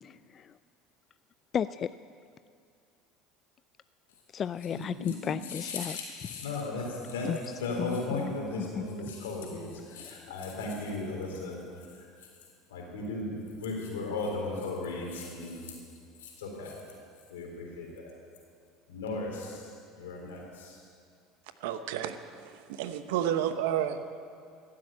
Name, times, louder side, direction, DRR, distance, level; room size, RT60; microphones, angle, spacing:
voice 1, 0.0-0.5 1.5-1.9 4.3-6.0 7.2-7.4 7.8-8.0 8.2-8.8 10.0-10.2, left 8 dB, 40° left, 14 dB, 0.3 m, -34 dB
voice 2, 4.7-7.3 7.6-11.6 11.9-12.3 12.7-15.8 16.2-16.8 17.3-18.1 18.9-20.9, left 3 dB, 90° left, -1 dB, 3.7 m, -36 dB
voice 3, 21.6-24.0, right 10 dB, 80° right, 10 dB, 0.9 m, -31 dB
16.0 x 7.7 x 8.8 m, 2.3 s
hypercardioid pair, 90°, 0 cm